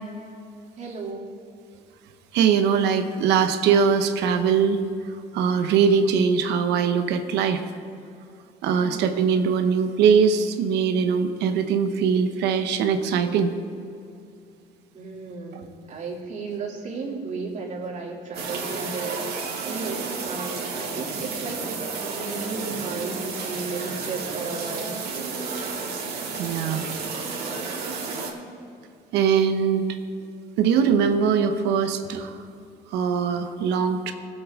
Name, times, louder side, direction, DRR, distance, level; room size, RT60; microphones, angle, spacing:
voice 1, 0.8-1.3 8.8-9.1 14.9-25.0, right 4 dB, 45° right, -3 dB, 2.8 m, -34 dB
voice 2, 2.3-4.8 5.3-7.6 8.6-13.5 26.4-26.9 29.1-29.9 30.6-32.4 32.9-34.1, right 6 dB, 85° right, 7 dB, 1.0 m, -21 dB
sound 1, 18.3-28.3, right 4 dB, 65° right, 2.4 m, -31 dB
18.5 x 7.9 x 3.7 m, 2.6 s
cardioid pair, 110°, 17 cm